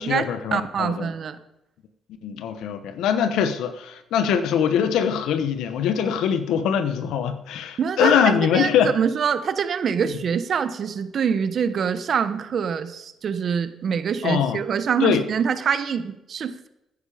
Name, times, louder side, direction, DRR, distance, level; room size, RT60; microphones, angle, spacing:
voice 1, 0.0-1.1 2.2-8.9 14.2-14.6 15.0-15.2, left 8 dB, 85° left, 10 dB, 1.2 m, -22 dB
voice 2, 0.5-1.4 7.8-16.7, right 7 dB, 55° right, 12 dB, 1.1 m, -25 dB
14.5 x 9.9 x 5.1 m, 0.88 s
cardioid pair, 90°, 0 cm